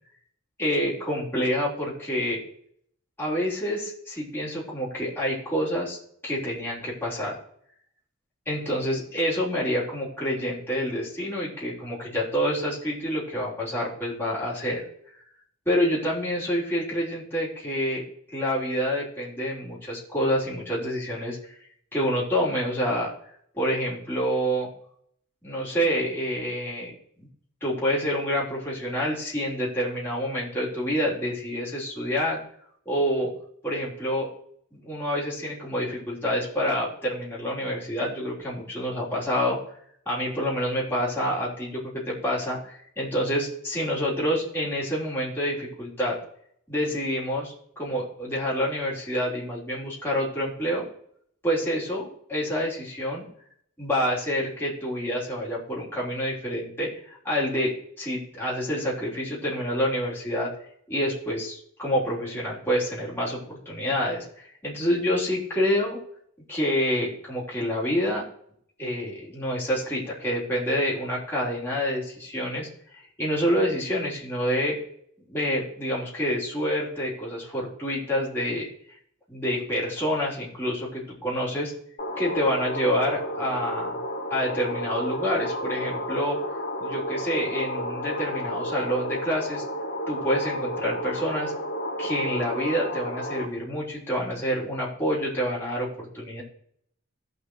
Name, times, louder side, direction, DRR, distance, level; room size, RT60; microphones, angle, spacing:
voice 1, 0.6-2.4 3.2-6.0 6.2-7.4 8.5-14.8 15.7-21.5 21.9-23.1 23.5-24.7 25.4-26.9 27.2-27.3 27.6-32.4 32.9-33.3 33.6-34.3 34.7-39.6 40.1-46.2 46.7-50.8 51.4-53.3 53.8-60.5 60.9-66.0 66.5-68.2 68.8-74.8 75.3-78.7 79.3-81.7 82.2-84.0 84.3-86.4 86.8-89.6 90.1-91.5 92.0-96.4, equal, 10° left, -7 dB, 3.6 m, -27 dB
sound 1, 82.0-93.5, equal, 45° left, 1.4 m, -32 dB
17.0 x 5.9 x 3.2 m, 0.68 s
head